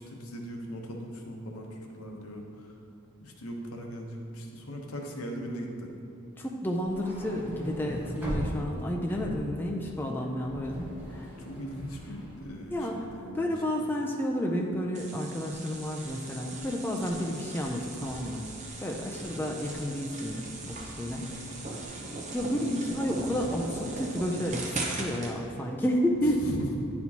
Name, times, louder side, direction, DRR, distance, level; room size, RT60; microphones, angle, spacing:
voice 1, 0.0-2.7 3.2-5.9 11.4-13.5 21.2-21.5 26.4-26.9, equal, 90° left, 1 dB, 0.8 m, -39 dB
voice 2, 6.4-11.3 12.7-13.1 13.3-18.4 18.8-21.2 22.3-26.4, equal, 10° left, 0 dB, 0.3 m, -31 dB
sound 1, 6.8-13.1, equal, 10° right, 1.1 m, -39 dB
sound 2, 14.9-25.3, right 2 dB, 35° right, 0.7 m, -39 dB
9.5 x 4.3 x 2.8 m, 2.6 s
head